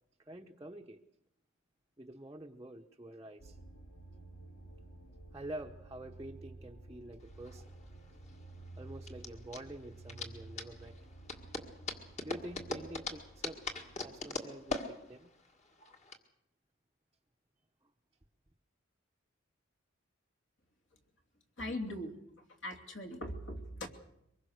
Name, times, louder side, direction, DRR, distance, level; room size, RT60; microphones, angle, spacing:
voice 1, 0.3-1.0 2.0-3.6 5.3-7.6 8.8-10.9 12.2-13.6 13.9-15.3, right 1 dB, 15° right, 1 dB, 0.9 m, -47 dB
sound 1, 3.4-15.3, right 2 dB, 90° left, 3.0 m, -53 dB
sound 2, 7.3-16.2, left 3 dB, 30° left, 1.9 m, -42 dB
voice 2, 21.6-22.2 22.6-23.9, left 1 dB, 60° left, 4 dB, 2.9 m, -40 dB
24.0 x 21.5 x 6.5 m, 0.79 s
head